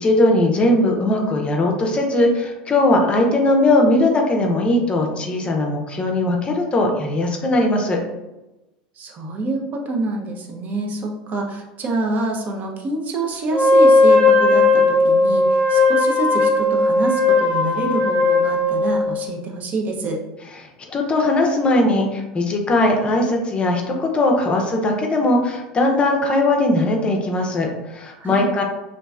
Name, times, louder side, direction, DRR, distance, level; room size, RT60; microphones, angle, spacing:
voice 1, 0.0-8.0 20.9-28.6, left 2 dB, 25° left, 1 dB, 0.6 m, -19 dB
voice 2, 9.0-20.2 28.2-28.5, right 2 dB, 40° right, 1 dB, 0.6 m, -26 dB
Wind instrument woodwind instrument, 13.5-19.1, left 3 dB, ahead, 1.1 m, -16 dB
2.9 x 2.5 x 2.3 m, 1.0 s
hypercardioid pair, 95°, 4 cm